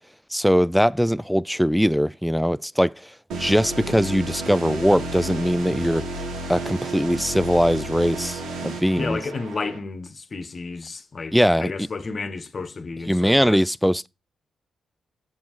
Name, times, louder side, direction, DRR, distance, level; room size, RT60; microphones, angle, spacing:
voice 1, 0.3-3.1 3.4-6.1 6.5-9.2 11.3-11.9 13.1-14.1, equal, ahead, 0.3 m, -21 dB
sound 1, 3.3-9.8, right 2 dB, 75° right, 1.4 m, -32 dB
voice 2, 9.0-13.6, left 4 dB, 45° left, 1.1 m, -32 dB
7.4 x 7.1 x 3.1 m
hypercardioid pair, 40°, 0 cm